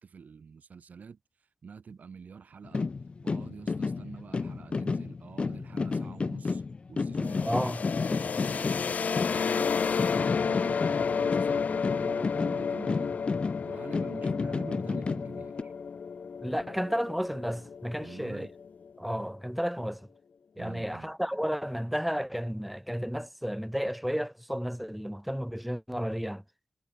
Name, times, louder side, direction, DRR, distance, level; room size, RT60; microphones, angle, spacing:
voice 1, 0.0-2.9 3.2-6.6 6.9-8.7 9.2-13.2 13.6-15.7 18.0-18.5 20.6-21.1, right 6 dB, 60° right, 1.9 m, -47 dB
sound 1, 2.6-9.7 10.0-15.6, left 4 dB, 35° left, 1.3 m, -32 dB
sound 2, 7.2-18.9, left 6 dB, 55° left, 1.1 m, -31 dB
voice 2, 7.5-7.8 16.4-18.5 19.0-20.0 20.6-26.4, equal, ahead, 0.5 m, -32 dB
wide cardioid pair, 180°, 3 cm